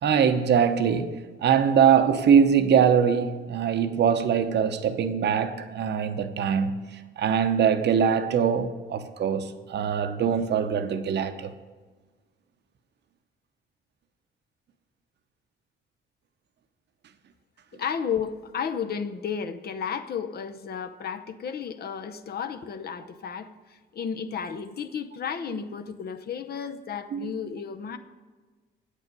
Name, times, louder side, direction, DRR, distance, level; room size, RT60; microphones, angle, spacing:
voice 1, 0.0-6.9 7.2-11.5 27.1-27.3, right 7 dB, 60° right, 0.8 m, -22 dB
voice 2, 17.7-23.5 23.9-28.0, left 7 dB, 50° left, 0.7 m, -33 dB
8.7 x 8.3 x 5.3 m
cardioid pair, 90°, 20 cm